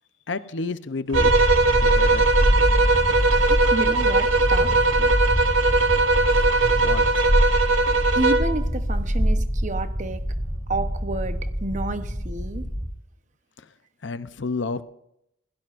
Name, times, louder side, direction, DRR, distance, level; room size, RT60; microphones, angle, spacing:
voice 1, 0.3-1.3 1.8-2.2 6.8-7.1 14.0-14.8, left 3 dB, 65° left, 0.7 m, -30 dB
sound 1, 1.1-12.9, equal, ahead, 1.5 m, -24 dB
sound 2, 1.1-8.6, right 3 dB, 75° right, 1.1 m, -20 dB
voice 2, 3.3-4.7 5.0-5.1 8.2-10.2 10.7-12.7, right 2 dB, 40° right, 0.9 m, -30 dB
26.5 x 16.5 x 2.5 m
head